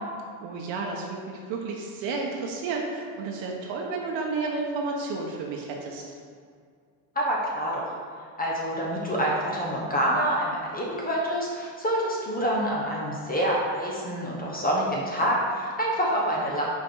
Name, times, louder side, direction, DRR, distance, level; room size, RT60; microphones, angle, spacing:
voice 1, 0.4-6.0, right 3 dB, 65° right, 0 dB, 1.0 m, -31 dB
voice 2, 7.1-7.8 8.4-16.6, equal, 20° left, -3 dB, 1.1 m, -27 dB
5.4 x 4.6 x 4.6 m, 2.2 s
supercardioid pair, 115°, 48 cm